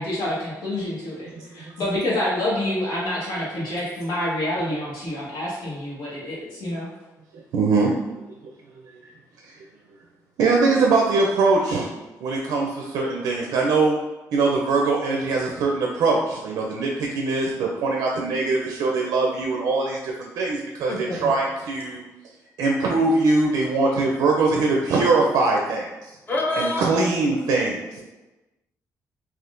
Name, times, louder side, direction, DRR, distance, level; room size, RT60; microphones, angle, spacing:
voice 1, 0.0-6.9, left 1 dB, 85° left, -7 dB, 1.2 m, -27 dB
voice 2, 7.5-7.9 8.2-8.3 10.4-11.9 12.2-14.0 14.3-22.0 22.6-25.9 26.5-28.0, right 3 dB, 75° right, -1 dB, 0.4 m, -22 dB
voice 3, 20.9-21.3 26.3-26.8, left 2 dB, 30° left, -2 dB, 0.6 m, -26 dB
3.4 x 2.5 x 2.5 m, 1.1 s
cardioid pair, 130°, 7 cm